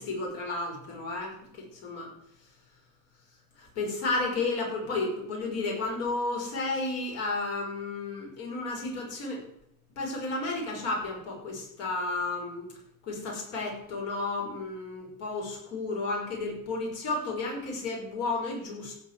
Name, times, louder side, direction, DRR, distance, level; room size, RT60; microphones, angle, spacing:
voice 1, 0.0-2.1 3.6-9.5 10.0-12.7 13.0-18.9, left 3 dB, 35° left, -1 dB, 5.3 m, -32 dB
16.0 x 5.4 x 8.3 m, 0.76 s
supercardioid pair, 165°, 42 cm